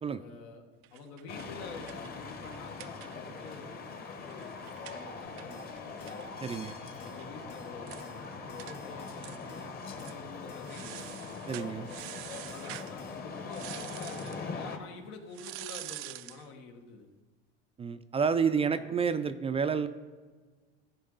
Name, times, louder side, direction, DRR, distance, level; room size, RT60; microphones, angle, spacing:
voice 1, 0.2-0.6 0.9-3.8 4.2-6.2 6.9-11.1 12.3-17.1 18.6-19.1, left 4 dB, 80° left, 4 dB, 1.6 m, -48 dB
sound 1, 0.8-3.5 3.8-3.9 4.1-7.3 7.6-7.7 7.9-8.1 8.6-8.8 9.2-9.6 9.9-10.2 10.6-12.9 13.5-14.4 15.3-16.5, right 18 dB, 85° right, 0.5 m, -46 dB
sound 2, 1.3-14.8, left 4 dB, 30° left, 1.1 m, -42 dB
sound 3, 5.3-13.2, left 4 dB, 55° left, 2.8 m, -55 dB
voice 2, 6.4-6.8 11.5-11.9 17.8-19.9, right 6 dB, 20° right, 11 dB, 0.4 m, -29 dB
15.0 x 5.2 x 3.9 m, 1.4 s
supercardioid pair, 115°, 30 cm